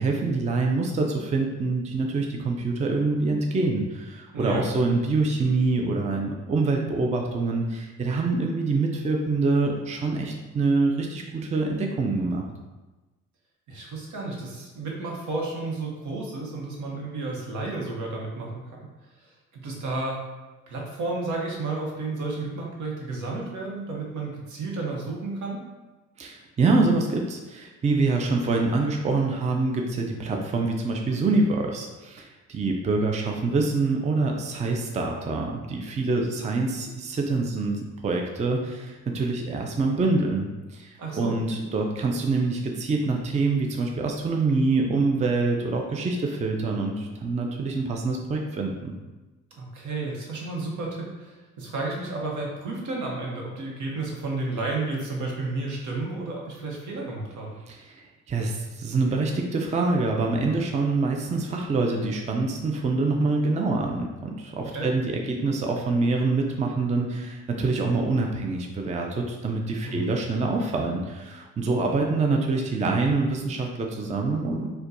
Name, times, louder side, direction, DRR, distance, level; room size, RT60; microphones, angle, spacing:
voice 1, 0.0-12.4 26.2-48.9 57.7-74.7, right 3 dB, 25° right, 1 dB, 0.4 m, -25 dB
voice 2, 4.3-4.7 13.7-18.8 19.5-20.2 20.7-25.6 41.0-41.3 49.6-57.6 64.6-64.9 69.8-70.1, right 3 dB, 75° right, -1 dB, 0.9 m, -32 dB
4.4 x 2.2 x 2.6 m, 1.1 s
cardioid pair, 90°, 30 cm